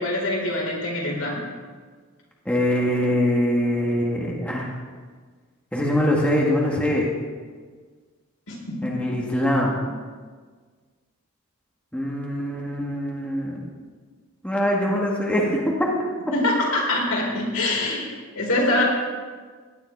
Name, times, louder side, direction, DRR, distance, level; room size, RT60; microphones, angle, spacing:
voice 1, 0.0-1.4 8.5-9.0 16.3-18.0 18.3-18.8, left 1 dB, 80° left, -2 dB, 4.4 m, -24 dB
voice 2, 2.5-4.7 5.7-7.1 8.8-9.9 11.9-13.7 14.4-15.9, equal, 5° left, -3 dB, 1.9 m, -23 dB
17.0 x 10.5 x 4.8 m, 1.5 s
head